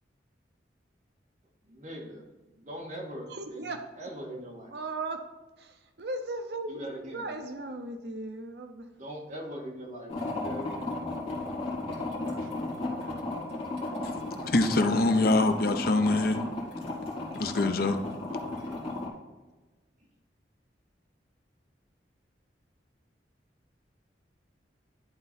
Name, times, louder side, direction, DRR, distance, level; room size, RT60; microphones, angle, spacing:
voice 1, 1.6-3.7 4.0-4.7 6.7-7.3 8.9-10.9 11.9-12.8, equal, 45° right, -2 dB, 1.9 m, -42 dB
voice 2, 3.3-3.8 4.3-5.2 5.6-8.8, right 2 dB, 65° right, 6 dB, 0.7 m, -37 dB
sound 1, 10.1-19.1, left 2 dB, 35° left, 2.4 m, -34 dB
voice 3, 14.5-16.4 17.3-18.0, left 2 dB, 55° left, 7 dB, 0.7 m, -24 dB
11.0 x 4.0 x 4.1 m, 1.2 s
head